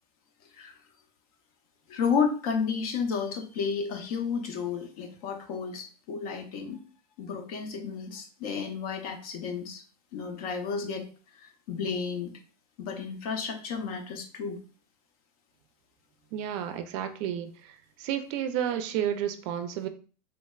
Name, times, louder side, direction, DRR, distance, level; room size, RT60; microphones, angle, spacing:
voice 1, 1.9-6.8 7.2-9.8 10.1-11.1 11.3-12.3 12.8-14.6, left 6 dB, 65° left, 4 dB, 0.7 m, -32 dB
voice 2, 16.3-17.7 18.0-19.9, right 10 dB, 50° right, 8 dB, 0.4 m, -31 dB
3.1 x 2.1 x 2.2 m, 0.38 s
supercardioid pair, 125°, 20 cm